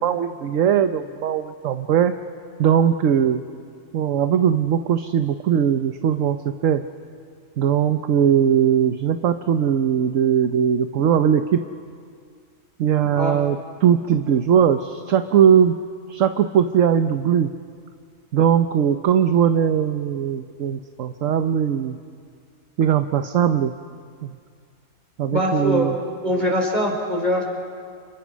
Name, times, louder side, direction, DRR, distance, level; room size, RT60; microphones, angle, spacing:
voice 1, 0.0-2.1 2.6-3.4 3.9-6.8 7.6-11.6 12.8-15.7 16.1-17.5 18.3-22.0 22.8-23.7 24.2-24.4 25.2-26.0, right 8 dB, 65° right, 8 dB, 1.2 m, -19 dB
voice 2, 25.3-25.9 26.2-27.4, equal, 30° right, 0 dB, 5.0 m, -22 dB
30.0 x 28.5 x 6.2 m, 2.2 s
omnidirectional pair, 1.5 m